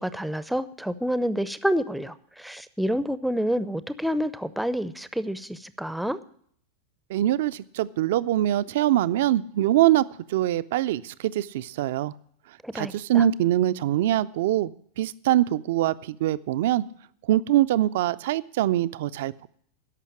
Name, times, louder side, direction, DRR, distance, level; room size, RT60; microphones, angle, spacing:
voice 1, 0.0-6.2 12.6-13.2, equal, ahead, 15 dB, 0.6 m, -28 dB
voice 2, 7.1-12.1 12.7-16.8 17.3-19.5, right 13 dB, 55° right, 15 dB, 0.4 m, -23 dB
13.5 x 5.7 x 9.3 m, 0.63 s
figure-of-eight pair, 90°, 0 cm